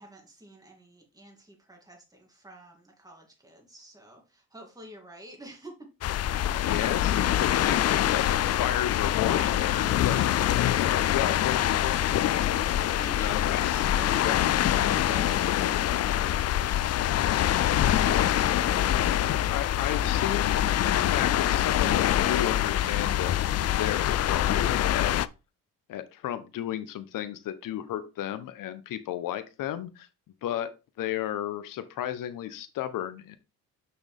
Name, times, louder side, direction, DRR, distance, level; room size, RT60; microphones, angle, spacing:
voice 1, 0.0-5.9 10.1-10.5 12.9-13.4 13.7-17.0 17.6-18.7, right 1 dB, 10° right, 0 dB, 2.7 m, -48 dB
sound 1, 6.0-25.3, left 12 dB, 45° left, 0.5 m, -25 dB
voice 2, 6.6-7.1 7.4-10.1 10.8-12.0 13.2-13.8 14.2-14.5 19.4-20.6 20.9-23.3 23.8-25.1 25.9-30.1 30.4-30.7 31.0-33.4, left 11 dB, 65° left, 11 dB, 0.9 m, -33 dB
6.2 x 6.1 x 3.4 m, 0.29 s
supercardioid pair, 70°, 35 cm